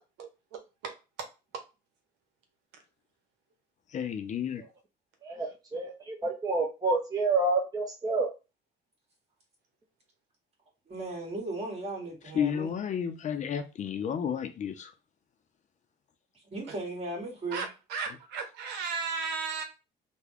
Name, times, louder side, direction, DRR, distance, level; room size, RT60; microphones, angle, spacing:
voice 1, 0.2-0.9 16.7-16.8 17.5-19.6, right 5 dB, 85° right, 0.9 m, -35 dB
voice 2, 3.9-4.6 12.3-14.9, left 8 dB, 45° left, 0.5 m, -31 dB
voice 3, 5.2-8.3, right 3 dB, 20° right, 0.6 m, -29 dB
voice 4, 10.9-12.7 16.5-17.7, right 2 dB, 40° right, 1.9 m, -36 dB
3.4 x 2.2 x 3.5 m
cardioid pair, 110°, 17 cm